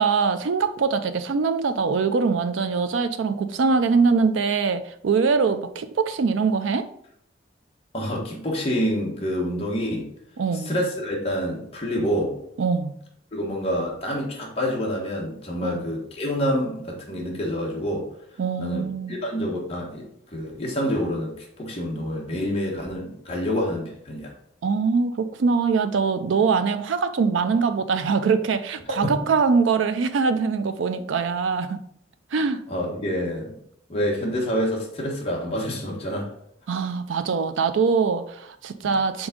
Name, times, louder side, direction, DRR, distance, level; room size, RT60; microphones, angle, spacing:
voice 1, 0.0-6.9 10.4-10.7 12.6-13.0 15.6-15.8 18.4-19.2 24.6-31.8 32.3-32.6 36.7-39.3, right 5 dB, 85° right, 0.4 m, -23 dB
voice 2, 7.9-10.1 10.5-12.3 13.3-18.1 18.6-20.1 20.3-24.3 28.9-29.1 32.7-33.5 33.9-36.3 38.8-38.9, equal, 30° left, 1.3 m, -27 dB
5.3 x 3.5 x 5.1 m
head